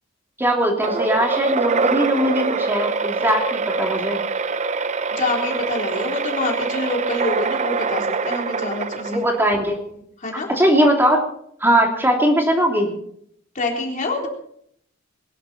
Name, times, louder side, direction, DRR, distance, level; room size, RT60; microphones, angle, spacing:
voice 1, 0.4-4.2 9.1-10.0 10.6-11.2 11.6-12.9, equal, 10° right, 1 dB, 3.1 m, -20 dB
sound 1, 0.8-9.6, right 4 dB, 35° right, 0.5 m, -24 dB
voice 2, 5.1-9.2 10.2-10.5 13.5-14.3, left 2 dB, 40° left, 0 dB, 3.8 m, -26 dB
22.0 x 11.5 x 4.3 m, 0.68 s
head